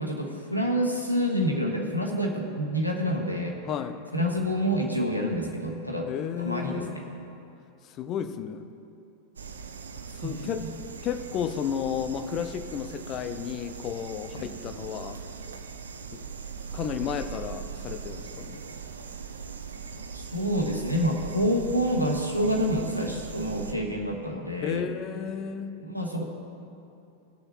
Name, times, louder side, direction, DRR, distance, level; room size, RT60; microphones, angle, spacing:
voice 1, 0.0-3.5 4.1-6.1 6.4-7.0 10.2-10.7 14.4-14.5 20.1-24.9 25.8-26.2, equal, 90° right, 1 dB, 1.2 m, -28 dB
voice 2, 3.7-4.0 6.1-7.0 8.0-8.7 10.2-10.7 11.0-15.2 16.1-16.2 16.7-18.6 24.6-25.7, left 8 dB, 35° left, 10 dB, 0.6 m, -32 dB
sound 1, 9.4-23.7, right 6 dB, 70° right, 0.6 m, -40 dB
19.5 x 6.5 x 3.1 m, 2.7 s
figure-of-eight pair, 90°, 0 cm